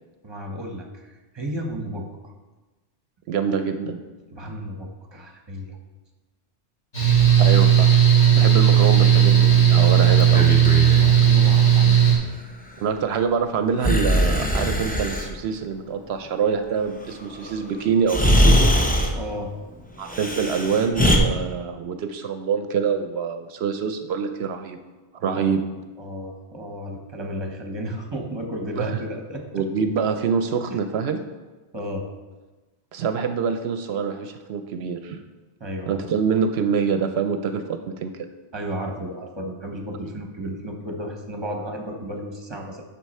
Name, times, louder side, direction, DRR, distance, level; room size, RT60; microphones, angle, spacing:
voice 1, 0.2-2.3 4.3-5.8 10.9-12.0 19.1-19.5 25.3-25.6 26.0-29.6 30.7-30.8 31.7-32.0 35.6-36.1 38.5-42.8, equal, 25° right, 2 dB, 1.0 m, -33 dB
voice 2, 3.3-4.0 7.4-7.9 8.3-10.6 12.8-18.7 20.0-24.8 25.1-25.6 28.8-29.0 29.5-31.2 32.9-35.2 35.9-38.1, right 6 dB, 70° right, 7 dB, 0.8 m, -25 dB
Mechanical fan, 6.9-12.2, right 9 dB, 40° left, 1.8 m, -15 dB
Breathing, 10.2-11.1 13.8-15.3 17.4-17.5 18.1-19.2 20.1-21.2, equal, 10° left, 0.5 m, -20 dB
8.0 x 5.8 x 4.3 m, 1.2 s
omnidirectional pair, 1.1 m